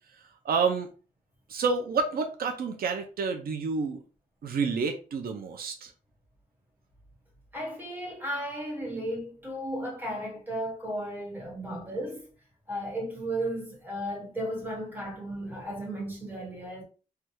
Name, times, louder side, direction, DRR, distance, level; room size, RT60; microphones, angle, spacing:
voice 1, 0.4-0.9 1.5-4.0 4.4-5.9, right 5 dB, 85° right, 0.5 m, -29 dB
voice 2, 7.5-12.2 12.7-16.8, right 1 dB, 10° right, 1.3 m, -34 dB
3.2 x 2.3 x 3.0 m
wide cardioid pair, 165°, 15 cm